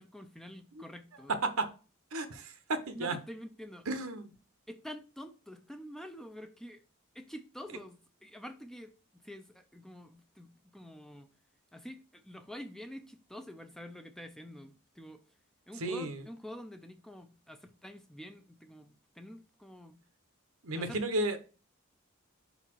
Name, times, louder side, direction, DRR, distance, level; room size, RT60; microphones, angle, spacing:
voice 1, 0.0-1.3 2.9-3.9 4.7-6.8 7.1-11.3 11.7-15.2 15.7-20.0 20.8-21.0 21.3-21.4, equal, ahead, 0.4 m, -47 dB
voice 2, 2.1-3.2 3.9-4.3 15.8-16.2 20.6-21.4, right 2 dB, 80° right, 0.9 m, -33 dB
5.4 x 4.1 x 4.5 m
head